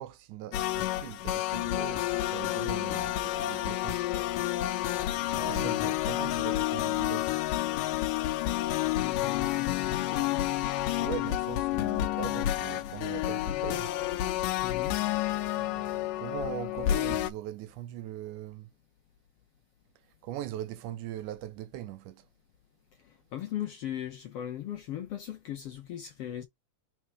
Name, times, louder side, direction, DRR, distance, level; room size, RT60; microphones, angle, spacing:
voice 1, 0.0-4.1 5.3-7.3 11.0-13.9 15.0-18.7 20.2-22.3, right 13 dB, 80° right, 2.0 m, -41 dB
sound 1, 0.5-17.3, left 14 dB, 85° left, 2.3 m, -30 dB
voice 2, 5.4-5.9 9.0-10.2 14.6-15.0 23.0-26.4, left 11 dB, 70° left, 1.5 m, -38 dB
4.8 x 4.4 x 4.6 m
omnidirectional pair, 3.7 m